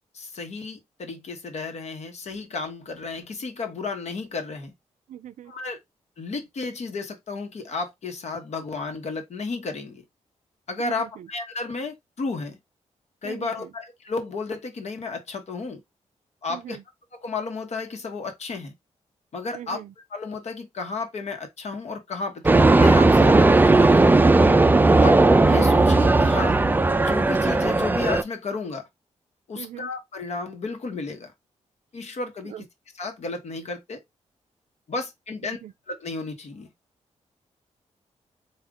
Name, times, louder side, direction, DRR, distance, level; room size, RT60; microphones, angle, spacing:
voice 1, 0.1-4.7 5.5-5.8 6.2-10.0 10.7-12.6 13.2-15.8 16.4-16.8 17.1-18.7 19.3-19.8 20.1-24.2 25.0-25.2 25.5-26.6 27.0-28.9 29.5-31.3 31.9-32.7 32.9-34.0 34.9-35.6 35.9-36.7, left 4 dB, 65° left, 1.1 m, -33 dB
voice 2, 5.1-5.5 10.8-11.3 13.2-13.7 16.5-16.8 19.5-19.9 24.9-25.2 29.6-29.9 32.4-32.6 35.4-35.7, right 10 dB, 85° right, 0.4 m, -40 dB
sound 1, 22.4-28.2, right 2 dB, 15° right, 0.3 m, -16 dB
3.6 x 2.4 x 3.7 m
cardioid pair, 90°, 12 cm